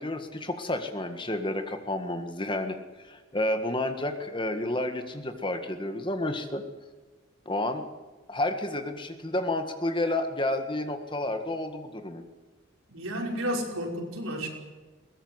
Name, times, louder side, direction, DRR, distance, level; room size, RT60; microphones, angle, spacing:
voice 1, 0.0-6.6 7.4-7.8 8.3-12.2, left 1 dB, 25° left, 7 dB, 1.7 m, -30 dB
voice 2, 12.9-14.5, equal, 90° right, 0 dB, 5.6 m, -31 dB
21.5 x 19.0 x 8.1 m, 1.3 s
head